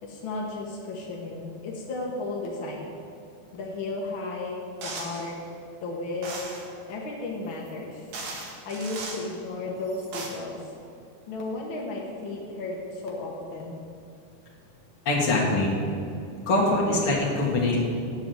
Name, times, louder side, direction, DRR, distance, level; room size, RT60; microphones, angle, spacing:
voice 1, 0.0-2.9 3.5-4.6 4.8-5.3 5.8-6.4 6.9-8.0 8.6-10.7 11.3-13.7, left 2 dB, 70° left, -2 dB, 1.2 m, -34 dB
sound 1, 4.8-5.3 6.2-6.7 7.7-7.8 8.1-9.3 9.9-10.3, right 3 dB, 55° right, 2.3 m, -37 dB
voice 2, 15.1-15.7 16.5-17.8, left 2 dB, 45° left, -3 dB, 2.2 m, -23 dB
8.5 x 7.4 x 7.9 m, 2.6 s
omnidirectional pair, 4.2 m